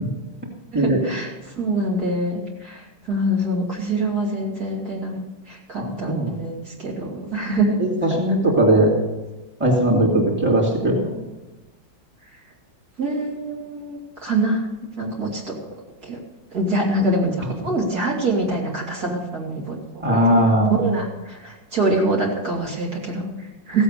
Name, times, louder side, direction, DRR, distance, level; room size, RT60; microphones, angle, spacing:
voice 1, 0.7-7.8 13.0-14.7 15.0-15.6 16.0-16.2 16.5-23.8, right 2 dB, 55° right, -3 dB, 3.2 m, -25 dB
voice 2, 5.8-6.3 7.8-8.9 9.6-11.1 20.0-21.0, right 1 dB, 5° right, -3 dB, 2.7 m, -19 dB
15.5 x 8.1 x 6.7 m, 1.1 s
omnidirectional pair, 2.0 m